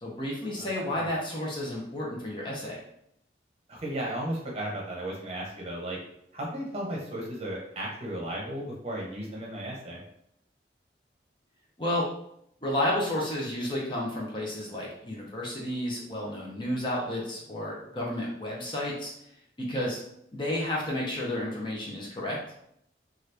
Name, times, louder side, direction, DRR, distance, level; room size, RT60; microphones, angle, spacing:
voice 1, 0.0-2.8 11.8-12.0 12.6-19.1 19.6-20.0 20.3-22.4, left 1 dB, 25° left, -4 dB, 0.6 m, -31 dB
voice 2, 3.7-6.0 6.3-10.0, right 1 dB, 35° right, -3 dB, 0.8 m, -35 dB
2.9 x 2.4 x 3.3 m, 0.75 s
head